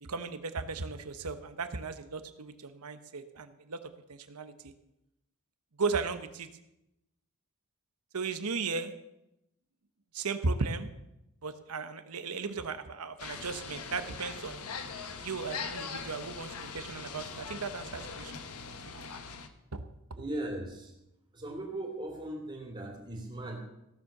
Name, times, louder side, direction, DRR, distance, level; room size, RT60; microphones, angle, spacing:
voice 1, 0.0-3.8 4.1-4.7 5.8-6.5 8.1-8.9 10.1-10.9 11.4-14.7 15.2-18.3 18.9-19.0 19.7-19.9, right 4 dB, 90° right, 10 dB, 1.1 m, -36 dB
sound 1, 13.2-19.5, left 5 dB, 80° left, 1.1 m, -41 dB
voice 2, 20.2-20.9 21.3-23.6, right 1 dB, 25° right, -1 dB, 2.6 m, -38 dB
16.0 x 7.4 x 6.6 m, 0.86 s
head